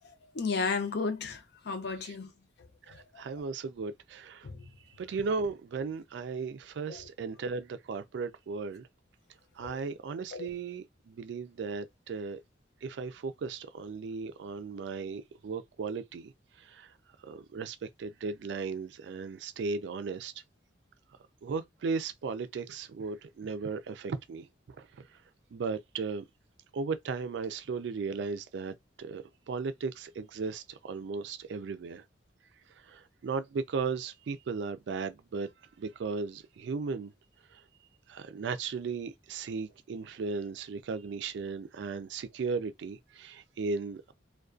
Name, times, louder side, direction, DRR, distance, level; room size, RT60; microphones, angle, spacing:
voice 1, 0.3-2.3 4.4-4.6 6.9-7.0 9.6-9.8 10.3-10.5, left 4 dB, 60° left, 0.5 m, -33 dB
voice 2, 2.9-4.5 5.0-8.9 9.6-12.4 12.8-16.3 16.6-16.9 17.2-20.3 21.4-24.5 24.8-24.9 25.5-26.2 26.7-32.0 32.9-35.5 35.8-37.1 37.5-37.6 38.1-44.1, right 4 dB, 65° right, 0.3 m, -36 dB
2.3 x 2.2 x 2.4 m
head